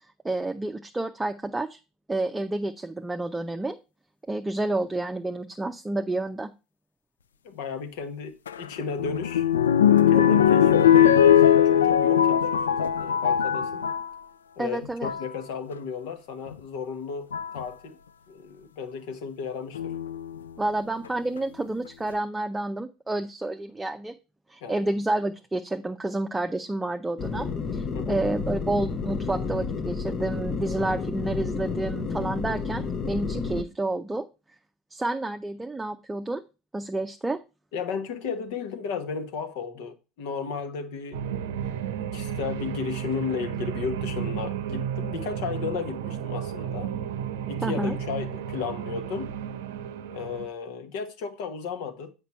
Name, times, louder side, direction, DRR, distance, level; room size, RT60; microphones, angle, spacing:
voice 1, 0.2-1.8 2.1-3.8 4.3-6.5 14.6-15.1 20.6-24.2 24.5-34.2 34.9-36.4 36.7-37.4 47.6-48.0, right 2 dB, 15° right, 0.6 m, -29 dB
voice 2, 7.4-9.5 10.1-13.8 14.6-17.3 17.5-18.0 18.3-19.9 24.6-24.9 27.9-28.2 37.7-41.4 42.1-46.9 47.5-49.4 50.1-52.1, left 5 dB, 65° left, 1.2 m, -34 dB
sound 1, 8.5-14.1 14.8-15.3 16.5-16.6 17.3-17.6 19.7-20.4 21.0-21.1 21.4-21.5, left 9 dB, 85° left, 0.3 m, -20 dB
sound 2, 27.2-33.6, left 5 dB, 40° left, 0.9 m, -31 dB
sound 3, 41.1-50.5, right 9 dB, 75° right, 0.6 m, -33 dB
8.2 x 5.2 x 4.3 m
hypercardioid pair, 70°, 0 cm